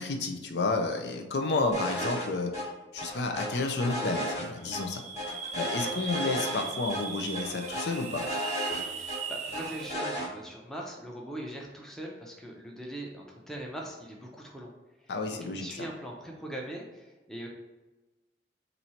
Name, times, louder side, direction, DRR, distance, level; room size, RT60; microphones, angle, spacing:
voice 1, 0.0-5.0 5.5-8.2 15.1-15.7, left 3 dB, 80° left, 4 dB, 0.6 m, -31 dB
sound 1, 1.7-2.3 2.5-2.6 3.0-4.8 5.2-6.6 6.9-7.0 7.3-9.2 9.5-10.3, equal, 40° left, 1.1 m, -34 dB
sound 2, 4.6-9.9, right 6 dB, 40° right, 0.4 m, -38 dB
voice 2, 9.0-14.7 15.0-15.1 15.5-17.5, right 1 dB, 5° left, -2 dB, 0.6 m, -41 dB
4.3 x 2.7 x 4.3 m, 1.1 s
head